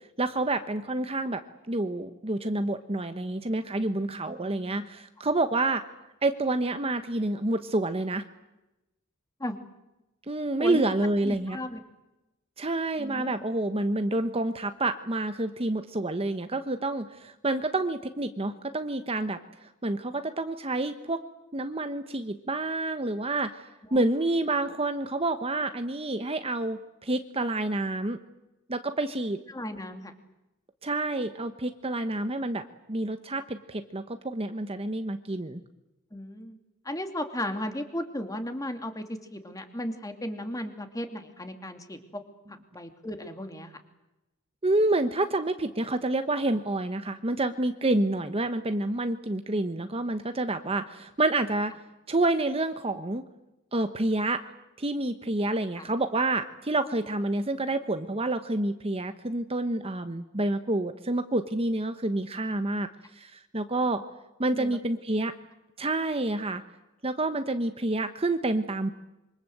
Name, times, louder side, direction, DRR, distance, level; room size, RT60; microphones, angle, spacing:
voice 1, 0.2-1.4 1.7-5.8 6.2-8.2 10.3-11.6 12.6-21.2 21.5-28.2 28.7-29.4 30.8-35.6 44.6-51.8 52.1-53.2 53.7-54.4 54.8-62.9 63.1-64.0 64.4-65.3 65.8-66.6 67.0-68.9, right 2 dB, 25° right, 8 dB, 1.1 m, -28 dB
voice 2, 11.2-11.8 13.0-13.4 23.9-24.1 29.5-30.1 36.1-36.6 36.8-42.2 42.5-43.8 55.8-55.9 64.5-64.8, left 1 dB, 15° left, 6 dB, 2.6 m, -35 dB
26.5 x 24.5 x 7.9 m, 0.96 s
head